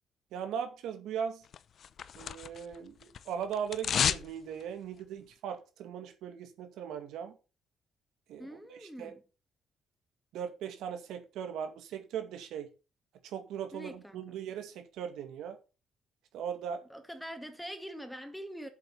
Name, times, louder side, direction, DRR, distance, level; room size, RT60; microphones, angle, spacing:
voice 1, 0.3-1.4 2.2-3.0 3.3-7.3 8.3-9.1 10.3-12.7 13.2-15.6 16.3-16.8, right 8 dB, 85° right, 2.1 m, -39 dB
sound 1, 1.5-2.8 3.0-4.3 4.6-4.7, left 8 dB, 60° left, 0.6 m, -31 dB
voice 2, 8.4-9.2 13.7-14.2 16.9-18.7, equal, ahead, 1.9 m, -44 dB
7.7 x 7.5 x 5.8 m
cardioid pair, 90°, 0 cm